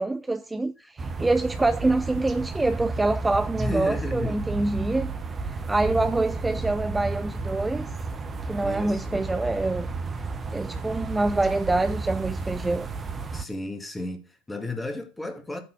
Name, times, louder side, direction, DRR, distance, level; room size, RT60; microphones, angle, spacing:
voice 1, 0.0-5.1 5.4-7.9 8.5-9.9 10.5-12.9, right 2 dB, 10° right, 0.5 m, -26 dB
sound 1, 1.0-13.4, right 3 dB, 30° right, 1.1 m, -32 dB
voice 2, 3.5-4.4 8.6-9.3 13.3-15.6, left 2 dB, 10° left, 2.0 m, -33 dB
8.9 x 4.0 x 6.7 m
figure-of-eight pair, 65°, 0 cm